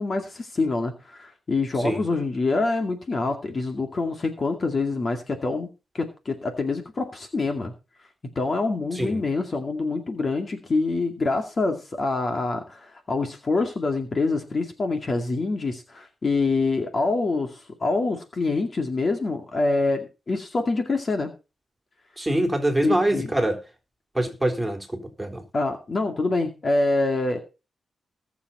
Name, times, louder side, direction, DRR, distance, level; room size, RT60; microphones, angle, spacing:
voice 1, 0.0-5.7 5.9-7.7 8.4-21.3 22.8-23.3 25.5-27.4, left 3 dB, 40° left, 2.3 m, -26 dB
voice 2, 22.2-23.6 24.1-24.9 25.2-25.4, right 1 dB, 5° right, 3.9 m, -24 dB
20.0 x 7.3 x 4.2 m
cardioid pair, 105°, 0 cm